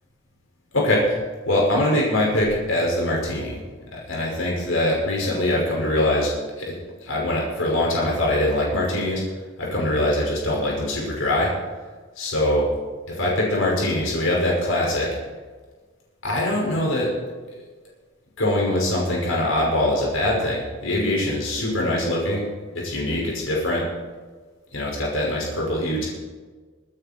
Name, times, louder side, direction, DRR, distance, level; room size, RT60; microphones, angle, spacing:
voice 1, 0.7-1.2 1.5-3.6 3.9-6.3 6.6-6.7 7.0-9.2 9.6-11.5 12.2-12.7 13.1-15.1 16.2-17.1 18.4-22.5 22.7-23.9 24.7-26.1, left 1 dB, 80° left, -3 dB, 5.7 m, -23 dB
25.0 x 9.6 x 4.5 m, 1.4 s
head